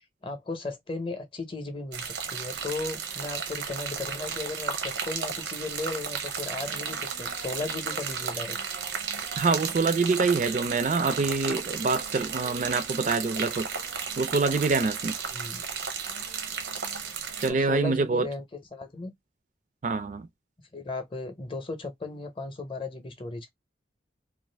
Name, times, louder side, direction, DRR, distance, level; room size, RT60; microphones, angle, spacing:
voice 1, 0.2-8.6 15.3-15.6 17.5-19.1 20.7-23.5, left 3 dB, 30° left, 0.7 m, -36 dB
sound 1, 1.9-17.5, right 6 dB, 85° right, 0.7 m, -34 dB
voice 2, 9.3-13.7 14.2-15.2 17.4-18.3 19.8-20.3, right 4 dB, 40° right, 0.3 m, -25 dB
2.4 x 2.4 x 3.2 m
head